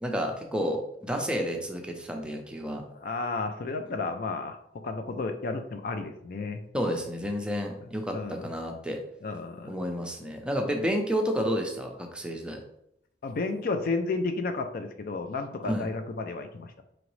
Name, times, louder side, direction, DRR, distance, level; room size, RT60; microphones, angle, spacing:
voice 1, 0.0-2.8 6.7-9.0 9.7-12.6 15.6-15.9, equal, 5° right, 2 dB, 0.6 m, -30 dB
voice 2, 2.9-4.6 4.8-6.6 7.8-8.5 9.2-9.7 10.7-10.9 13.2-16.8, left 3 dB, 55° left, 6 dB, 0.4 m, -32 dB
4.9 x 3.0 x 3.1 m, 0.76 s
head